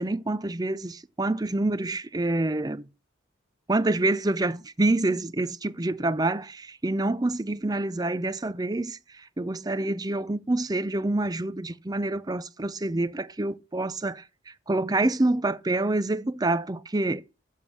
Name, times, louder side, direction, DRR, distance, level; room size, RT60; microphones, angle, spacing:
voice 1, 0.0-2.8 3.7-17.2, right 2 dB, 20° right, 0.5 m, -27 dB
7.3 x 6.3 x 7.3 m
head